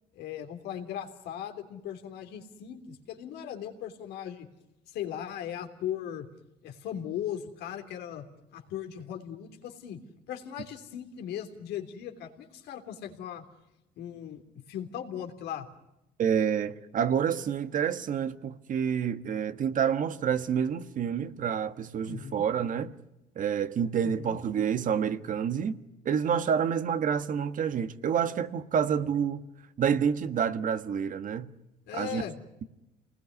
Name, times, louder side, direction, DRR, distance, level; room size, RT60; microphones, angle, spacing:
voice 1, 0.1-4.5 4.9-6.3 6.6-8.2 8.5-10.0 10.3-13.4 14.0-14.4 14.7-15.7 22.0-22.4 24.0-24.4 31.9-32.4, left 10 dB, 80° left, 3.3 m, -38 dB
voice 2, 16.2-22.9 23.4-25.8 26.0-29.4 29.8-31.5 31.9-32.2, right 7 dB, 50° right, 1.5 m, -28 dB
28.0 x 20.0 x 9.6 m
cardioid pair, 110°, 17 cm